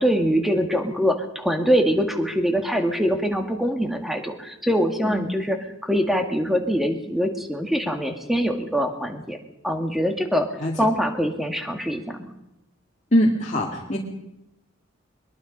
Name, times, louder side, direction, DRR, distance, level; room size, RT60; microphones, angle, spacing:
voice 1, 0.0-9.4 9.6-10.5 10.8-12.3, equal, ahead, 4 dB, 2.1 m, -23 dB
voice 2, 13.1-14.0, equal, 35° left, -3 dB, 2.5 m, -22 dB
23.0 x 21.5 x 5.5 m, 0.87 s
head